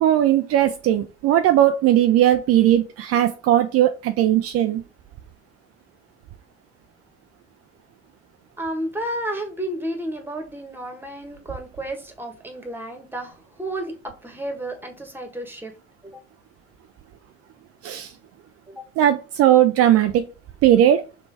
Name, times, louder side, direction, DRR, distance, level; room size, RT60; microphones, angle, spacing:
voice 1, 0.0-4.8 17.8-18.1 19.0-20.2 20.6-21.0, right 12 dB, 50° right, 7 dB, 0.5 m, -18 dB
voice 2, 8.6-13.9 14.2-15.7 16.0-16.2 18.7-18.8, right 1 dB, 5° right, 4 dB, 1.4 m, -32 dB
3.3 x 3.0 x 4.6 m, 0.32 s
hypercardioid pair, 60°, 32 cm